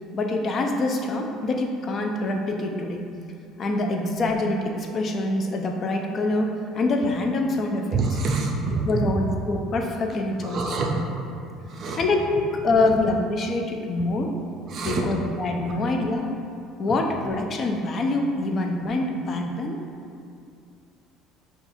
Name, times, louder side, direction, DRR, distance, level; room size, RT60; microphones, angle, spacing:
voice 1, 0.1-3.0 3.6-8.0 8.8-11.0 12.0-14.3 14.8-16.3 16.8-19.8, left 2 dB, 35° left, 2 dB, 0.4 m, -25 dB
voice 2, 7.9-9.0 10.4-11.0 11.6-12.0 12.7-12.9 14.7-15.1 15.7-15.8, right 3 dB, 45° right, 0 dB, 0.4 m, -27 dB
5.6 x 2.3 x 2.6 m, 2.4 s
cardioid pair, 130°, 0 cm